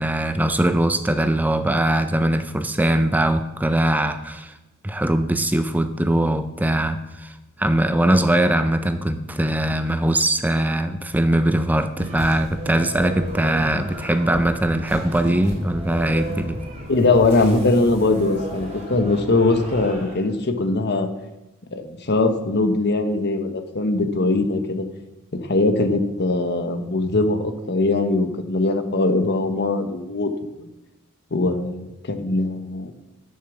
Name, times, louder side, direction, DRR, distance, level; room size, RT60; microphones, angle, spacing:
voice 1, 0.0-4.6 4.8-16.6, right 1 dB, 10° right, 9 dB, 0.4 m, -21 dB
sound 1, 12.0-20.3, equal, 30° right, 3.8 m, -35 dB
sound 2, 12.0-12.2 12.7-12.9 13.5-13.8 14.1-14.5 15.2-15.5 16.0-16.4 17.0-17.5, right 2 dB, 50° right, 2.0 m, -36 dB
voice 2, 16.9-21.1 21.7-24.8 25.3-30.7 31.3-32.9, left 2 dB, 50° left, 9 dB, 1.1 m, -21 dB
10.5 x 6.6 x 7.2 m, 1.0 s
head